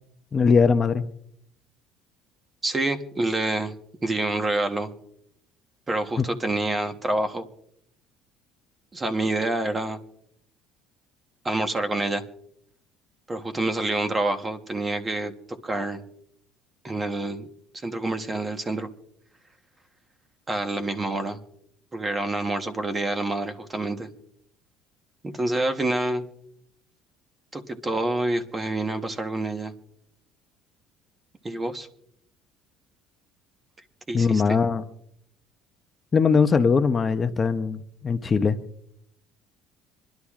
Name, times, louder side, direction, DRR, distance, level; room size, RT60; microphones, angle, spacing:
voice 1, 0.3-1.1 6.2-6.3 34.1-34.8 36.1-38.6, left 5 dB, 25° left, 9 dB, 0.5 m, -21 dB
voice 2, 2.6-3.7 4.0-4.9 5.9-7.5 8.9-10.0 11.4-12.2 13.3-16.0 16.8-17.5 17.7-18.9 20.5-21.4 21.9-24.1 25.2-26.3 27.5-29.7 31.4-31.9 34.1-34.6, right 2 dB, 15° right, 8 dB, 1.0 m, -27 dB
26.0 x 11.5 x 2.4 m, 0.71 s
cardioid pair, 145°, 0 cm